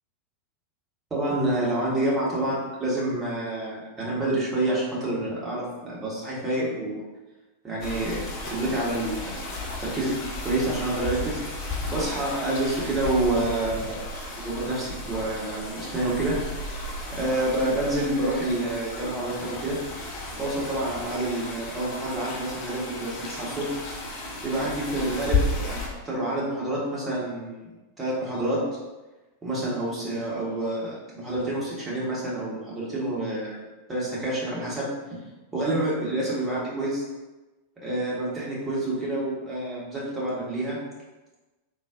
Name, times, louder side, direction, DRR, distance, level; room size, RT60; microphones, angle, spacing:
voice 1, 1.1-7.0 7.6-9.3 9.8-10.1 10.4-11.4 11.9-14.0 14.3-16.3 17.2-19.8 20.4-23.6 24.4-27.7 28.0-28.6 29.4-34.8 35.5-37.1 37.8-40.8, right 1 dB, 15° right, -6 dB, 1.2 m, -28 dB
sound 1, 7.8-25.9, left 2 dB, 40° left, 0.7 m, -33 dB
3.8 x 2.5 x 2.5 m, 1.1 s
figure-of-eight pair, 90°, 0 cm